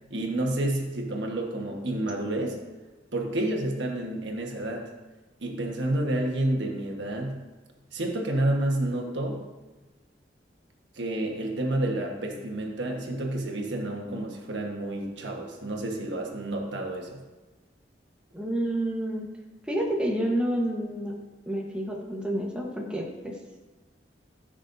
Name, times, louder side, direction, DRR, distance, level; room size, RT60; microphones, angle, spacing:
voice 1, 0.1-2.6 3.1-4.9 5.4-7.4 7.9-9.4 10.9-17.2, right 1 dB, 90° right, 1 dB, 1.3 m, -29 dB
voice 2, 18.3-19.3 19.7-21.1 21.5-23.4, right 1 dB, 5° right, -1 dB, 1.1 m, -29 dB
14.5 x 6.3 x 2.6 m, 1.2 s
head